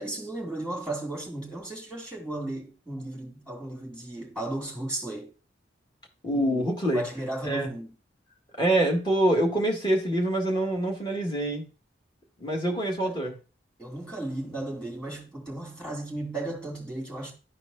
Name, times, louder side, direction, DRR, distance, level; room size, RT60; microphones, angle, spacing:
voice 1, 0.0-5.3 6.3-6.6 6.9-7.9 13.0-13.1 13.8-17.3, right 1 dB, 5° left, 2.6 m, -35 dB
voice 2, 6.2-7.0 7.4-7.7 8.6-11.7 12.4-13.3, right 1 dB, 25° left, 1.8 m, -25 dB
12.5 x 4.5 x 2.7 m
head